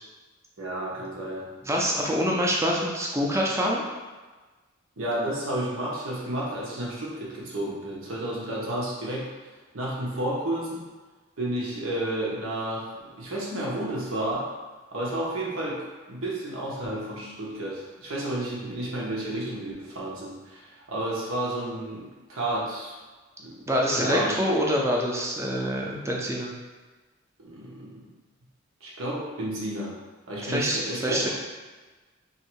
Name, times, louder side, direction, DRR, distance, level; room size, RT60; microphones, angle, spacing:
voice 1, 0.6-1.5 5.0-9.3 9.7-10.8 11.4-14.4 14.9-22.9 23.4-23.6 23.9-24.4 27.4-28.1 28.8-29.9 30.3-31.3, right 1 dB, 85° right, -5 dB, 1.1 m, -31 dB
voice 2, 1.6-3.8 23.7-26.5 30.5-31.3, equal, 15° right, -2 dB, 0.5 m, -25 dB
3.2 x 2.7 x 4.5 m, 1.3 s
head